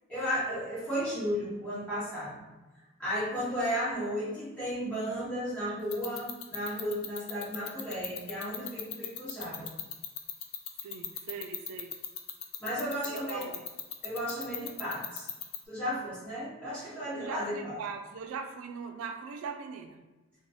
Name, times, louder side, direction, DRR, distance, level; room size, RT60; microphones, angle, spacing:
voice 1, 0.1-2.4 3.0-9.7 12.6-13.5 14.0-15.3 15.7-17.8, equal, 5° left, -12 dB, 1.4 m, -34 dB
sound 1, 5.9-15.6, left 11 dB, 70° left, 0.3 m, -36 dB
voice 2, 10.8-12.0 13.0-13.7 17.1-20.0, right 5 dB, 80° right, 5 dB, 0.3 m, -40 dB
3.1 x 2.3 x 2.6 m, 1.1 s
head